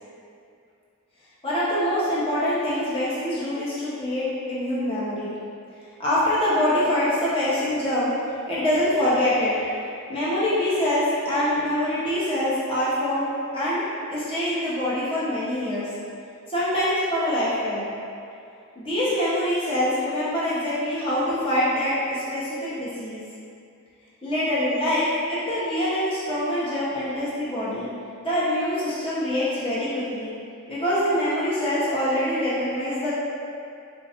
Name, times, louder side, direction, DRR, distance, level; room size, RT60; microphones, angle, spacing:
voice 1, 1.4-5.3 6.0-8.1 8.5-9.8 10.1-13.3 13.5-13.8 14.1-15.9 16.5-17.9 18.8-23.2 24.2-27.9 28.2-30.3 30.7-33.1, left 1 dB, 25° left, -10 dB, 0.8 m, -24 dB
4.4 x 2.3 x 4.2 m, 2.5 s
head